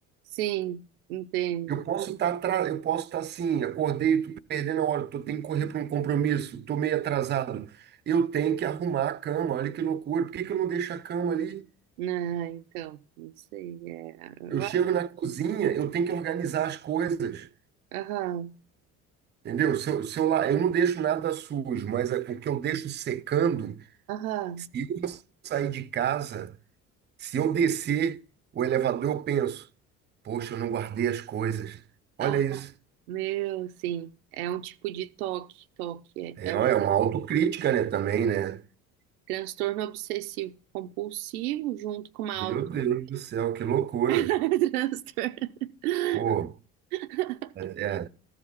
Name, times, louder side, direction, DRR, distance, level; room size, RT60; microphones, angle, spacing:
voice 1, 0.3-0.8 1.1-1.8 5.3-5.4 5.6-5.7 12.0-14.8 17.9-18.5 24.1-24.7 32.2-32.6 33.1-36.7 39.3-42.6 44.1-46.2 46.9-47.5, right 14 dB, 80° right, 0.6 m, -32 dB
voice 2, 1.7-7.7 8.1-11.7 14.5-17.5 19.4-23.8 24.7-26.5 27.2-28.2 28.5-29.7 30.2-31.8 32.2-32.7 36.4-38.6 42.4-44.3 46.1-46.5 47.6-48.1, right 9 dB, 25° right, 0.5 m, -27 dB
14.0 x 4.9 x 5.9 m
hypercardioid pair, 60°, 43 cm